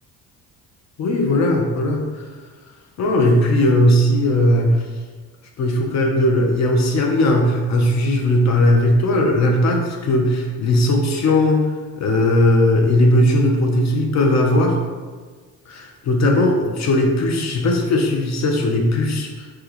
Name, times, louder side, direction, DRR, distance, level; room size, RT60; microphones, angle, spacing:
voice 1, 1.0-2.0 3.0-4.7 5.6-11.6 12.0-14.8 15.7-19.6, left 1 dB, 35° left, 1 dB, 0.5 m, -18 dB
3.0 x 2.2 x 3.3 m, 1.4 s
hypercardioid pair, 60°, 48 cm